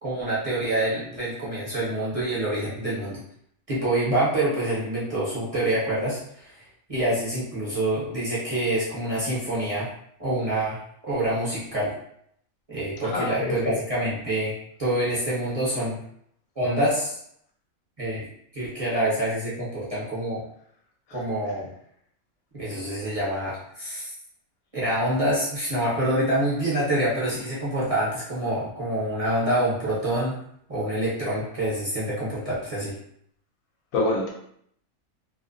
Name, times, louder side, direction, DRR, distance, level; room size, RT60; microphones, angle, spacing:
voice 1, 0.0-3.2 3.7-6.6 6.9-9.9 10.2-10.8 11.0-11.9 12.7-14.5 14.8-16.0 16.6-17.2 18.0-18.3 18.5-20.4 21.1-21.7 22.5-24.1 24.7-30.3 30.7-32.9, right 1 dB, 35° right, -9 dB, 0.7 m, -26 dB
voice 2, 13.0-13.7 33.9-34.3, left 2 dB, 75° left, -1 dB, 1.0 m, -26 dB
2.6 x 2.1 x 2.4 m, 0.70 s
omnidirectional pair, 1.5 m